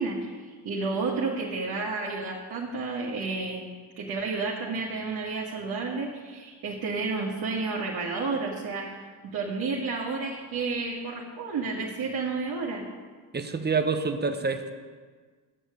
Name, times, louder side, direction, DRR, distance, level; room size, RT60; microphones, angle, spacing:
voice 1, 0.0-12.8, right 4 dB, 60° right, -3 dB, 1.7 m, -31 dB
voice 2, 13.3-14.7, right 4 dB, 25° right, 8 dB, 0.9 m, -27 dB
9.2 x 6.4 x 7.8 m, 1.5 s
supercardioid pair, 75°, 41 cm